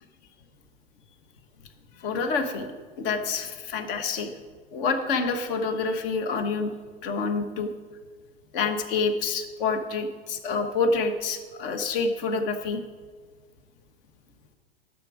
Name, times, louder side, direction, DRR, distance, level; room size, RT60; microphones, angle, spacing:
voice 1, 2.0-2.7 3.0-4.3 4.7-6.7 7.0-7.7 8.5-12.8, left 4 dB, 60° left, 7 dB, 1.4 m, -27 dB
11.5 x 7.7 x 5.0 m, 1.5 s
hypercardioid pair, 115°, 31 cm